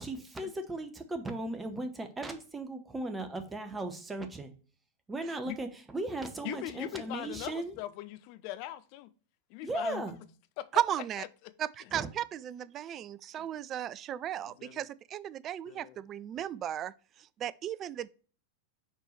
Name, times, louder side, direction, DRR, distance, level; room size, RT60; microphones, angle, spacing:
voice 1, 0.0-4.5 5.1-7.7 9.6-10.2 11.9-12.1, right 2 dB, 15° right, 0.9 m, -37 dB
voice 2, 6.4-9.1 9.5-10.0 10.6-10.7 11.2-11.5 13.4-13.5 14.6-14.8 15.7-16.0, left 15 dB, 45° left, 0.5 m, -41 dB
voice 3, 10.7-11.2 11.6-18.1, right 10 dB, 30° right, 0.3 m, -35 dB
6.7 x 4.6 x 3.2 m
figure-of-eight pair, 90°, 0 cm